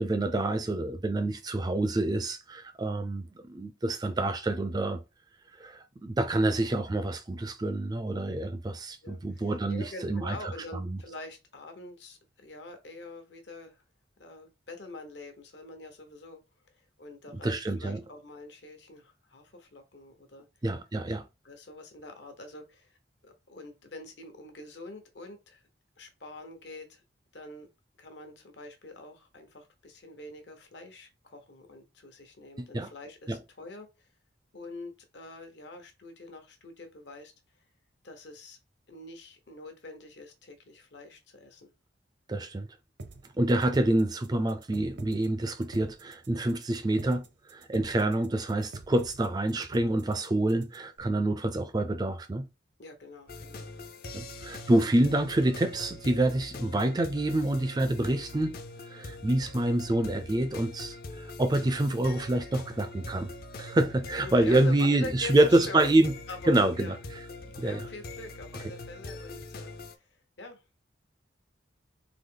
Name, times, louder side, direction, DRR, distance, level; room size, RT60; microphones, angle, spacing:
voice 1, 0.0-5.0 5.6-11.0 17.4-18.0 20.6-21.2 32.6-32.9 33.3-33.4 42.3-42.7 43.4-47.2 47.5-52.5 54.1-58.6 58.9-61.0 61.4-63.3 63.6-66.1 66.5-66.9 67.6-67.8, right 1 dB, 20° right, 0.4 m, -27 dB
voice 2, 9.0-13.8 14.2-16.4 17.0-20.5 21.4-23.0 23.2-25.6 26.0-27.0 27.3-27.7 28.0-34.1 34.5-37.3 38.0-38.6 38.9-41.7 52.8-53.7 64.2-66.0 66.3-67.0 67.6-70.1 70.4-70.6, left 2 dB, 70° left, 1.0 m, -45 dB
sound 1, 43.0-51.0, right 2 dB, 75° right, 0.6 m, -46 dB
sound 2, 53.3-69.9, left 2 dB, 50° left, 0.5 m, -43 dB
4.0 x 2.9 x 3.8 m
head